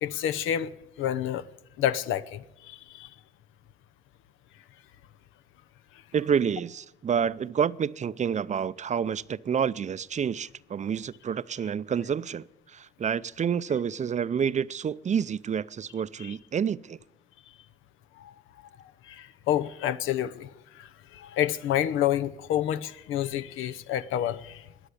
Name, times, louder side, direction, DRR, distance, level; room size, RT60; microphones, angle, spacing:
voice 1, 0.0-1.4 1.8-3.1 16.2-16.3 18.2-18.3 19.0-24.6, left 11 dB, 90° left, 0.8 m, -29 dB
voice 2, 6.1-17.0, right 7 dB, 35° right, 0.5 m, -28 dB
21.0 x 8.0 x 8.4 m
cardioid pair, 90°, 20 cm